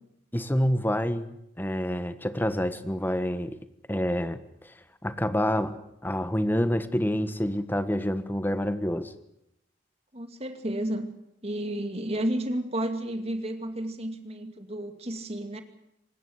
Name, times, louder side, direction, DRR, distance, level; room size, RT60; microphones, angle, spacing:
voice 1, 0.3-3.6 3.9-4.4 5.0-9.1, equal, 10° left, 11 dB, 1.3 m, -27 dB
voice 2, 10.1-11.1 11.4-15.6, right 1 dB, 35° right, 7 dB, 2.5 m, -31 dB
25.0 x 20.0 x 8.1 m, 0.82 s
head